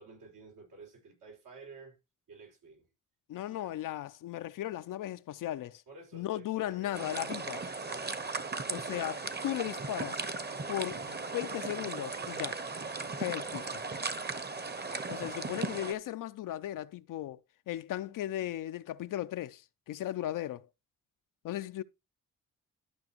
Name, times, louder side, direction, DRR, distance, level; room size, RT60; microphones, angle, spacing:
voice 1, 0.0-2.0 2.3-2.9 3.4-3.8 5.9-9.1 14.8-15.3, right 3 dB, 85° right, 5.6 m, -53 dB
voice 2, 3.3-5.8 6.1-7.6 8.7-10.3 10.7-12.6 13.2-13.8 15.1-20.7 21.4-21.8, left 13 dB, 85° left, 0.6 m, -37 dB
sound 1, 6.9-15.9, right 3 dB, 30° right, 1.2 m, -37 dB
12.5 x 5.9 x 3.0 m
cardioid pair, 70°, 31 cm